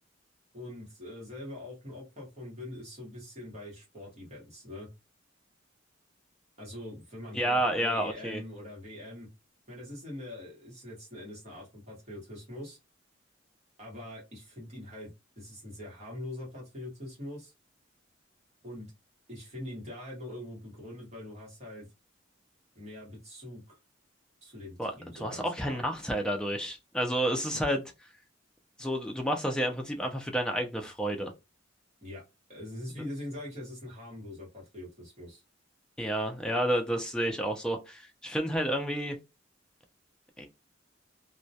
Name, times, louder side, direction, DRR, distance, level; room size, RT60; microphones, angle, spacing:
voice 1, 0.5-4.9 6.6-9.3 9.7-12.8 13.8-15.1 15.4-17.5 18.6-18.9 19.3-21.9 22.7-23.8 24.4-25.8 27.5-27.6 32.0-32.2 32.5-35.4, left 1 dB, 35° right, 1.0 m, -43 dB
voice 2, 7.3-8.4 24.8-24.9 25.2-27.8 28.8-31.3 36.0-39.2 40.4-40.5, right 1 dB, 5° left, 0.4 m, -30 dB
2.1 x 2.1 x 2.6 m
head